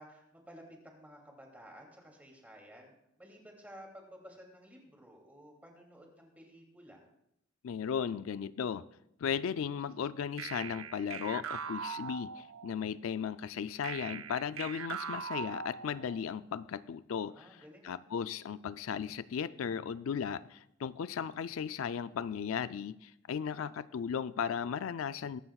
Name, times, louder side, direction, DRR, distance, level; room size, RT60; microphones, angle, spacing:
voice 1, 0.0-7.1 17.3-18.0, equal, 10° right, 0 dB, 2.7 m, -54 dB
voice 2, 7.6-8.8 9.2-25.4, left 7 dB, 80° left, 15 dB, 0.4 m, -36 dB
sound 1, 10.4-12.9 13.8-16.3, right 7 dB, 80° right, 0.5 m, -41 dB
22.0 x 11.5 x 2.4 m, 0.80 s
head